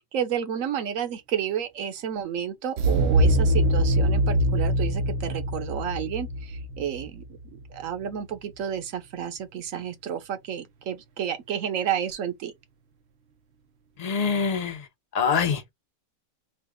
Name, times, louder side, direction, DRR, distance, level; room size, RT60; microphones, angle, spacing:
voice 1, 0.0-7.2 7.7-12.5, right 9 dB, 85° right, 1.2 m, -31 dB
sound 1, 2.8-7.6, right 1 dB, 60° right, 0.8 m, -23 dB
voice 2, 14.0-14.9 15.1-15.7, left 6 dB, 40° left, 0.6 m, -25 dB
3.3 x 2.3 x 3.4 m
omnidirectional pair, 1.4 m